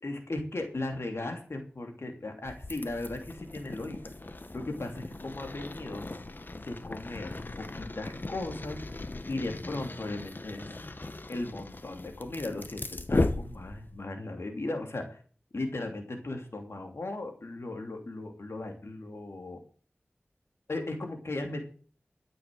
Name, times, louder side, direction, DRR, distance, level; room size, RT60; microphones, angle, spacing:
voice 1, 0.0-4.0 4.5-6.0 6.5-7.3 7.7-8.8 9.3-10.7 11.3-15.2 15.5-19.6 20.7-21.7, left 2 dB, 80° left, 4 dB, 2.9 m, -37 dB
sound 1, 2.4-14.0, left 2 dB, 50° left, 1.2 m, -37 dB
13.0 x 7.7 x 7.7 m, 0.42 s
wide cardioid pair, 55°, 4 cm